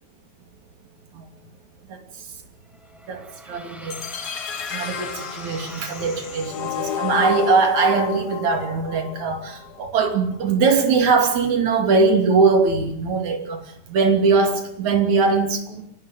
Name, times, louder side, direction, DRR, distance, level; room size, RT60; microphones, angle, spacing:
sound 1, 2.7-7.0, left 1 dB, ahead, 2.6 m, -42 dB
voice 1, 3.1-4.0 4.7-13.6 13.9-15.8, right 4 dB, 70° right, 4.2 m, -21 dB
sound 2, 3.9-9.9, left 8 dB, 50° left, 1.3 m, -31 dB
24.5 x 18.0 x 9.2 m
omnidirectional pair, 3.5 m